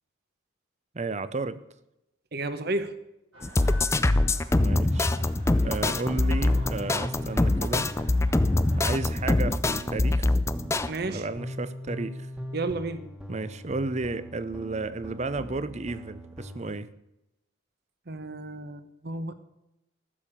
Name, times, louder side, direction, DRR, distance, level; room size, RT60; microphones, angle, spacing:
voice 1, 0.9-1.6 4.6-5.1 5.6-7.9 8.8-10.4 11.1-12.3 13.3-16.9, right 3 dB, 35° right, 15 dB, 0.6 m, -33 dB
voice 2, 2.3-2.9 10.9-11.2 12.5-13.1 18.1-19.3, right 2 dB, 50° right, 11 dB, 1.0 m, -32 dB
sound 1, 3.3-9.5, equal, 85° right, 5.1 m, -47 dB
sound 2, 3.4-10.9, left 2 dB, 15° left, 0.4 m, -24 dB
sound 3, 6.0-16.7, equal, 5° right, 1.4 m, -41 dB
14.5 x 6.9 x 7.3 m, 0.89 s
head